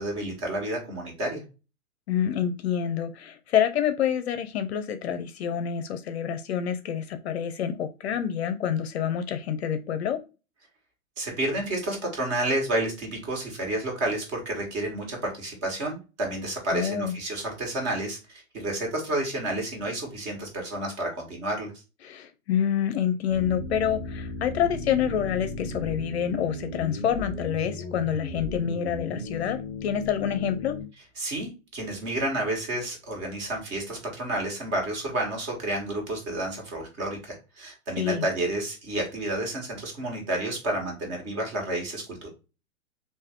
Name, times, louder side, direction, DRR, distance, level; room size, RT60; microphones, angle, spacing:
voice 1, 0.0-1.4 11.2-21.7 31.2-42.3, right 1 dB, 35° right, 1 dB, 1.8 m, -30 dB
voice 2, 2.1-10.2 16.7-17.1 22.0-30.8 38.0-38.2, left 9 dB, 50° left, 9 dB, 0.6 m, -27 dB
sound 1, 23.3-30.8, left 2 dB, ahead, 1.1 m, -36 dB
3.4 x 2.7 x 3.4 m, 0.30 s
hypercardioid pair, 120°, 42 cm